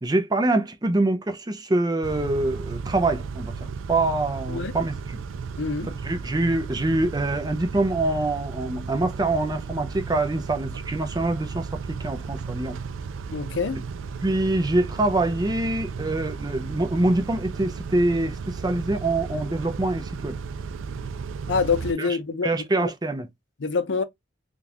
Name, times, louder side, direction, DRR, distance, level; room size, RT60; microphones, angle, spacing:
voice 1, 0.0-5.0 6.0-12.8 14.2-20.4 22.0-22.1 22.4-23.3, right 2 dB, 20° right, 0.5 m, -25 dB
Car / Idling / Accelerating revving vroom, 2.0-21.9, right 5 dB, 90° right, 0.4 m, -34 dB
voice 2, 5.6-6.0 13.3-13.8 21.5-22.9 23.6-24.0, left 4 dB, 70° left, 0.6 m, -26 dB
3.6 x 2.4 x 2.8 m
head